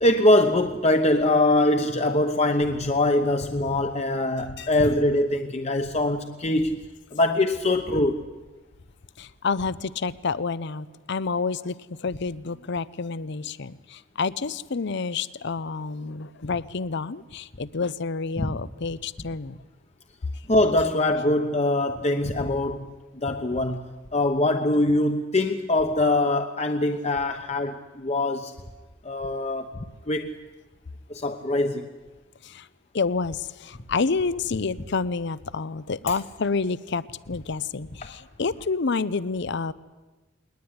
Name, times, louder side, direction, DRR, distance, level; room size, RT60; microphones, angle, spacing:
voice 1, 0.0-6.8 7.1-8.2 18.4-18.6 20.5-28.5 29.0-30.3 31.1-31.9 36.1-36.2 38.0-38.1, left 1 dB, 35° left, 1.0 m, -23 dB
voice 2, 9.2-19.6 32.4-32.7 32.9-39.7, left 4 dB, 60° left, 0.7 m, -29 dB
21.0 x 20.0 x 9.7 m
head